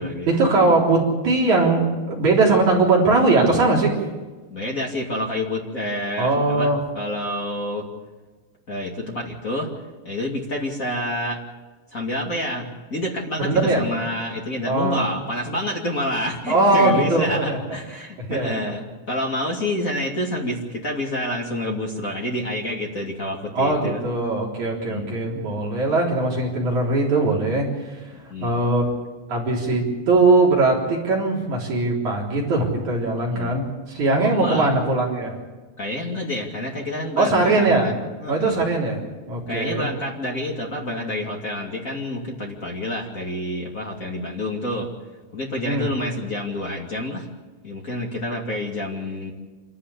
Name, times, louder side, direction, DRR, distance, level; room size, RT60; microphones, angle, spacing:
voice 1, 0.3-3.9 6.2-6.8 13.4-13.8 14.6-15.0 16.5-17.6 18.2-18.6 23.5-27.7 28.4-28.9 29.3-35.3 37.2-37.9 38.3-39.0 39.3-39.9 45.6-45.9, right 2 dB, 40° right, -3 dB, 4.5 m, -20 dB
voice 2, 4.5-7.9 8.7-9.7 10.0-11.4 11.9-24.0 24.8-25.2 28.3-28.6 33.3-33.7 34.2-34.7 35.8-37.9 38.2-38.6 39.5-44.9 45.3-47.3 47.6-49.3, left 1 dB, 35° left, -1 dB, 1.3 m, -28 dB
27.5 x 13.0 x 8.5 m, 1.3 s
omnidirectional pair, 5.9 m